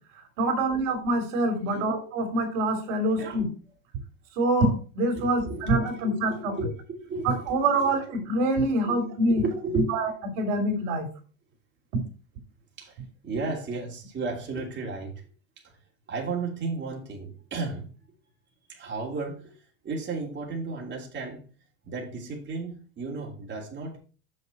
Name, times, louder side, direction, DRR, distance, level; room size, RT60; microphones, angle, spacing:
voice 1, 0.4-3.5 4.3-6.5 7.2-9.4 9.9-10.1 10.3-11.1, right 1 dB, 70° right, 4 dB, 3.4 m, -25 dB
voice 2, 5.1-7.9 8.8-10.0 12.8-15.2 15.6-15.7 16.1-17.9 18.7-21.5 21.8-24.0, right 3 dB, 30° right, -2 dB, 2.9 m, -34 dB
7.0 x 6.5 x 4.2 m, 0.38 s
supercardioid pair, 100°, 38 cm